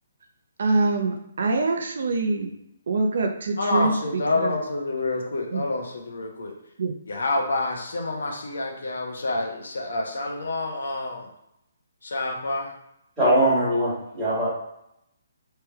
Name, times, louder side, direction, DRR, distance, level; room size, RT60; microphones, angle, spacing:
voice 1, 0.6-2.5 2.9-4.5 5.5-5.6 6.8-6.9, right 3 dB, 55° right, 4 dB, 0.6 m, -24 dB
voice 2, 3.6-6.5 7.1-11.3 12.0-12.7, left 2 dB, 80° left, 1 dB, 1.0 m, -28 dB
voice 3, 13.2-14.5, right 1 dB, 5° right, -12 dB, 1.6 m, -21 dB
3.4 x 3.3 x 4.5 m, 0.81 s
hypercardioid pair, 175°, 0 cm